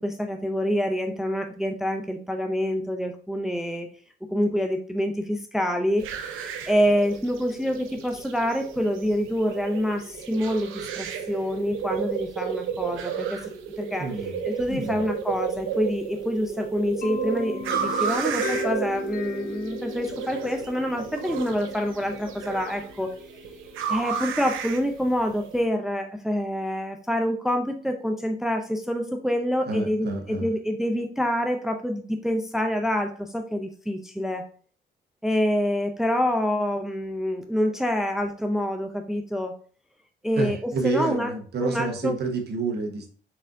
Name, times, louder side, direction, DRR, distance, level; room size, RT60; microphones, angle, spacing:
voice 1, 0.0-3.9 4.3-13.4 13.8-14.1 14.4-23.1 23.9-34.4 35.2-39.5 40.2-41.3 41.6-42.2, equal, ahead, 5 dB, 0.5 m, -26 dB
sound 1, 6.0-25.6, right 7 dB, 85° right, 0.6 m, -33 dB
voice 2, 14.0-14.4 14.7-15.0 29.7-30.4 40.3-43.1, right 3 dB, 55° right, 3 dB, 1.2 m, -29 dB
sound 2, 17.0-24.7, left 3 dB, 45° left, 0.7 m, -37 dB
4.3 x 3.6 x 2.6 m, 0.43 s
cardioid pair, 90°, 20 cm